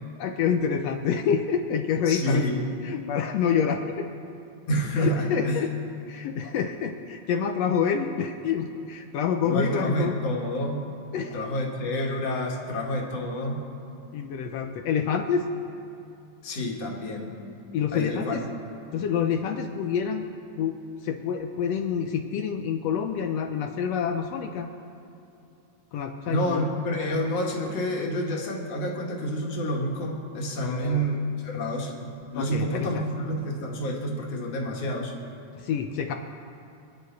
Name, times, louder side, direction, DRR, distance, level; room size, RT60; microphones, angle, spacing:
voice 1, 0.2-2.4 2.8-4.1 5.0-5.7 6.1-10.1 11.1-11.4 14.1-15.4 17.7-18.4 18.9-20.3 20.6-20.8 21.0-24.7 25.9-26.6 30.6-31.0 32.3-32.9 35.6-36.1, left 7 dB, 75° left, 5 dB, 1.6 m, -27 dB
voice 2, 2.1-2.7 4.7-5.7 9.4-10.8 11.3-13.6 16.4-17.3 17.9-18.4 26.2-35.1, equal, 55° left, -1 dB, 2.9 m, -28 dB
29.5 x 10.0 x 4.1 m, 2.7 s
omnidirectional pair, 3.6 m